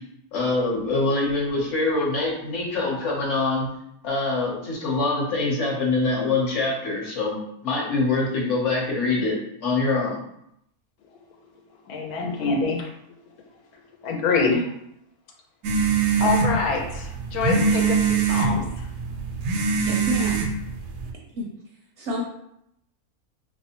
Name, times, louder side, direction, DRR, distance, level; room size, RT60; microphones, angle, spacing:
voice 1, 0.3-3.7 4.0-9.4 9.6-10.2, left 3 dB, 55° left, -2 dB, 1.1 m, -24 dB
voice 2, 11.9-12.9 14.0-14.7 16.2-18.9, left 4 dB, 85° left, 2 dB, 1.2 m, -25 dB
sound 1, 15.6-21.1, right 5 dB, 90° right, 1.1 m, -23 dB
voice 3, 19.8-20.5 21.3-21.5 22.0-22.2, equal, 65° right, -1 dB, 0.7 m, -29 dB
3.3 x 2.9 x 2.8 m, 0.77 s
omnidirectional pair, 1.5 m